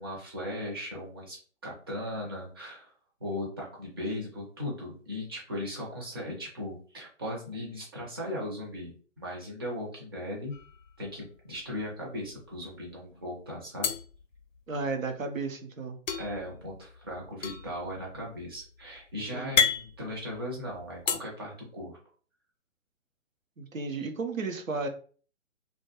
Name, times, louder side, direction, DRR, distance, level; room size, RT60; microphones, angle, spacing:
voice 1, 0.0-1.4 1.6-2.9 3.2-10.5 11.0-13.9 16.2-22.0, left 1 dB, 20° right, -3 dB, 0.5 m, -37 dB
sound 1, 10.5-11.4 11.7-11.9 12.2-12.9 13.8-15.1 16.1-21.2, left 6 dB, 75° left, 0.5 m, -32 dB
voice 2, 14.7-16.0 19.1-19.6 23.6-24.9, right 4 dB, 85° right, 5 dB, 0.7 m, -34 dB
2.3 x 2.1 x 2.9 m, 0.41 s
figure-of-eight pair, 135°, 39 cm